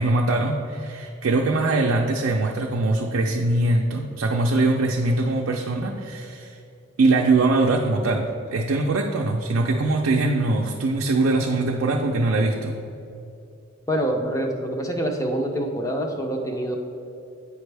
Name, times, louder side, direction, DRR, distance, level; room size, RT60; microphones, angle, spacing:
voice 1, 0.0-6.5 7.0-12.8, right 2 dB, 80° right, 0 dB, 0.5 m, -22 dB
voice 2, 13.9-16.8, right 1 dB, 15° left, 2 dB, 0.6 m, -26 dB
8.3 x 5.2 x 3.3 m, 2.6 s
head